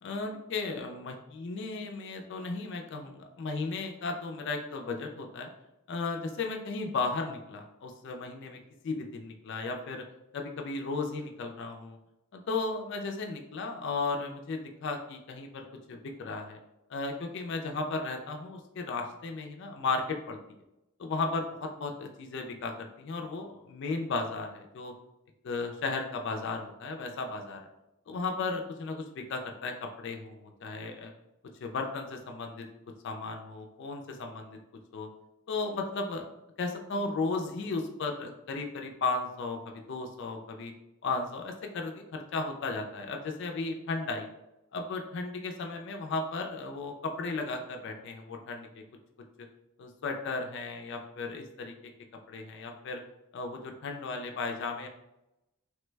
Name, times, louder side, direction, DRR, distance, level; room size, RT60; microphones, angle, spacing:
voice 1, 0.0-5.5 5.9-8.6 8.8-10.0 10.3-12.0 12.3-16.6 16.9-20.4 21.0-24.9 25.4-27.6 28.1-31.1 31.6-32.7 33.0-34.6 34.9-35.1 35.5-36.2 36.6-40.7 41.0-44.3 44.7-48.8 49.4-49.5 49.8-51.7 52.3-53.0 53.3-54.9, left 3 dB, 50° left, 3 dB, 0.3 m, -35 dB
3.1 x 2.1 x 3.2 m, 0.92 s
head